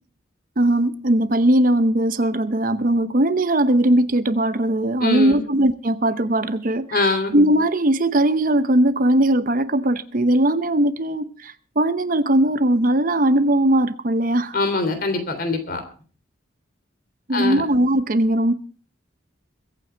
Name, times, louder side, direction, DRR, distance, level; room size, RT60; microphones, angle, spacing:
voice 1, 0.6-14.6 17.3-18.5, right 1 dB, 45° right, 0.8 m, -19 dB
voice 2, 5.0-5.4 6.9-7.3 14.5-15.8 17.3-17.6, left 2 dB, 50° left, 3.3 m, -23 dB
22.5 x 8.8 x 4.5 m
head